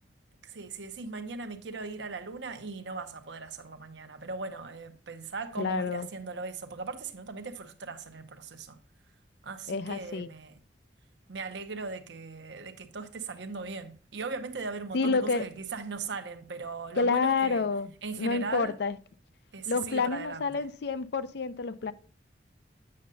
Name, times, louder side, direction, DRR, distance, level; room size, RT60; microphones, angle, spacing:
voice 1, 0.4-8.8 9.4-10.6 11.3-17.7 18.0-18.8 19.5-20.6, right 4 dB, 70° right, 0.8 m, -39 dB
voice 2, 5.6-6.1 9.7-10.3 14.9-15.4 17.0-17.9 18.2-19.0 19.7-21.9, left 4 dB, 60° left, 0.5 m, -28 dB
8.6 x 6.5 x 2.7 m
head